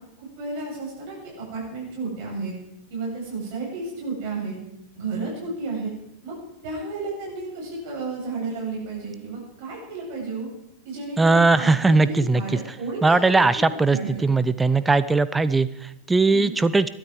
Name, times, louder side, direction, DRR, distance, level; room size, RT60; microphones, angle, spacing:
voice 1, 0.0-2.5 2.9-4.6 4.9-5.9 6.2-6.4 6.6-10.5 10.8-14.4 16.2-16.6, right 3 dB, 45° right, -2 dB, 8.0 m, -32 dB
voice 2, 11.2-12.4 13.0-16.9, right 3 dB, 10° right, 15 dB, 0.7 m, -19 dB
21.5 x 12.5 x 4.9 m, 0.80 s
figure-of-eight pair, 90°, 0 cm